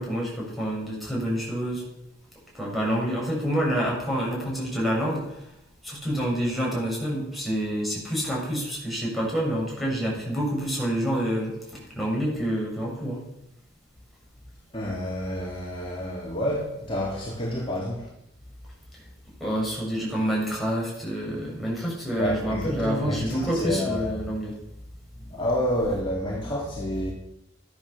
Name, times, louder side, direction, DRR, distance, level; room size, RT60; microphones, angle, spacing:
voice 1, 0.0-1.9 2.5-5.5 5.8-13.3 19.4-24.6, equal, ahead, -4 dB, 7.0 m, -28 dB
voice 2, 14.7-18.1 22.2-24.3 25.2-27.1, equal, 25° left, -5 dB, 3.2 m, -29 dB
14.5 x 11.5 x 7.1 m, 0.83 s
head